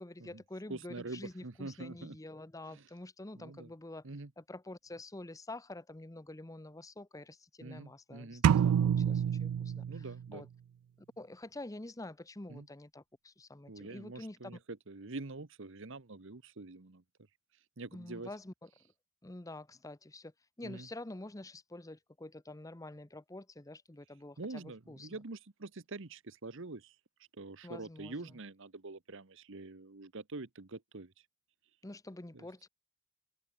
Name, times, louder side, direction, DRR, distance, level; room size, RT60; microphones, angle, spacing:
voice 1, 0.0-4.1 4.4-10.1 10.3-10.5 11.2-14.5 17.9-18.7 19.2-20.3 20.6-25.1 27.6-28.1 31.8-32.7, left 2 dB, 15° left, 0.7 m, -47 dB
voice 2, 0.7-2.2 2.7-2.9 3.4-3.7 4.0-4.3 7.6-8.5 9.9-10.5 12.5-12.7 13.7-17.0 17.8-18.3 20.6-20.9 24.4-27.0 27.3-31.2 32.3-32.5, right 3 dB, 60° right, 1.1 m, -45 dB
sound 1, 8.4-10.3, right 8 dB, 85° right, 0.3 m, -28 dB
head